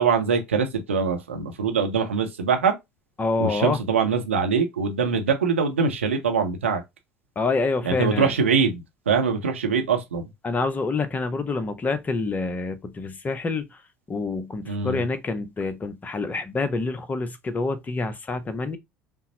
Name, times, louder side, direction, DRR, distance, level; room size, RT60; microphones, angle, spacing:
voice 1, 0.0-2.7 3.4-6.8 7.8-10.2 14.6-15.0, right 5 dB, 80° right, 0.7 m, -23 dB
voice 2, 3.2-3.8 7.4-8.3 10.4-13.7 14.1-18.8, left 3 dB, 25° left, 0.6 m, -27 dB
5.4 x 2.0 x 2.8 m
figure-of-eight pair, 65°, 7 cm